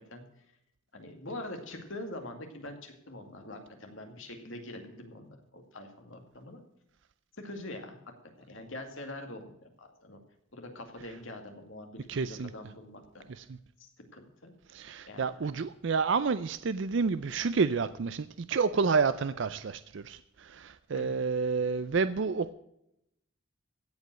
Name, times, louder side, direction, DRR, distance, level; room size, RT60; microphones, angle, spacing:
voice 1, 0.9-6.6 7.4-8.0 8.5-10.2 10.5-13.2 13.8-14.5 15.1-15.6 20.9-21.1, left 1 dB, 70° left, 4 dB, 2.3 m, -44 dB
voice 2, 12.1-12.5 13.4-13.6 14.7-22.5, right 5 dB, 60° right, 13 dB, 0.5 m, -29 dB
16.0 x 5.3 x 7.5 m, 0.82 s
head